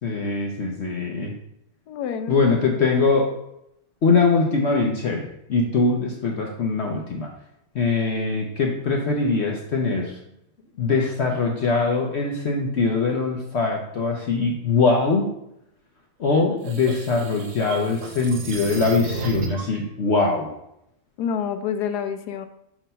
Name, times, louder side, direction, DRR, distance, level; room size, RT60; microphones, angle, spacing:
voice 1, 0.0-1.3 2.3-3.3 4.0-7.3 7.7-10.2 10.8-15.3 16.2-20.5, left 4 dB, 55° left, 0 dB, 0.8 m, -22 dB
voice 2, 1.9-2.4 21.2-22.5, left 7 dB, 85° left, 9 dB, 1.2 m, -27 dB
sound 1, 16.3-19.8, right 3 dB, 80° right, 1.4 m, -33 dB
5.8 x 3.0 x 5.5 m, 0.79 s
omnidirectional pair, 1.7 m